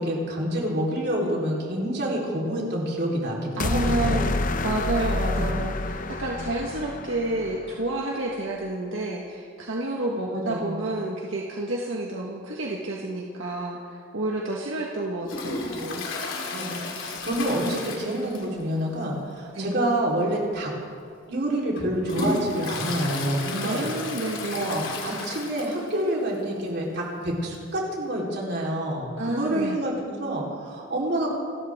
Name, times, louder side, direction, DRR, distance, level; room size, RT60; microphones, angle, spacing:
voice 1, 0.0-4.2 5.3-5.5 10.3-10.7 16.5-20.7 21.3-23.9 24.5-31.3, right 1 dB, 60° right, -3 dB, 4.2 m, -27 dB
sound 1, 3.6-7.9, left 2 dB, 45° left, 0.7 m, -28 dB
voice 2, 3.6-4.3 4.6-16.1 19.5-19.7 23.5-24.9 29.2-29.8, right 2 dB, 85° right, -1 dB, 1.7 m, -30 dB
Toilet flush, 15.3-18.7 19.0-19.1 19.5-19.6 20.4-20.6 21.1-26.0 26.3-26.4 26.6-26.7 27.8-27.9, left 3 dB, 80° left, 2.9 m, -33 dB
28.5 x 13.0 x 3.8 m, 2.2 s
head